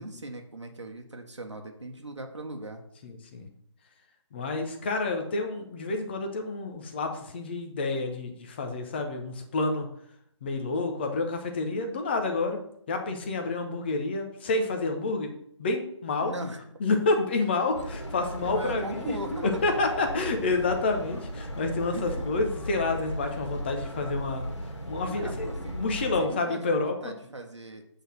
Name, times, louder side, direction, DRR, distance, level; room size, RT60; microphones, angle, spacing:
voice 1, 0.0-2.8 16.2-16.7 18.4-19.6 21.9-22.3 25.1-25.8 26.2-27.9, right 2 dB, 70° right, 3 dB, 1.5 m, -39 dB
voice 2, 3.0-3.5 4.3-9.9 10.4-12.6 12.9-15.3 15.6-16.3 16.8-24.5 24.9-27.1, left 3 dB, 20° left, 5 dB, 0.9 m, -29 dB
sound 1, 17.7-26.3, equal, 65° left, 2.1 m, -37 dB
8.2 x 3.9 x 6.2 m, 0.69 s
figure-of-eight pair, 150°, 16 cm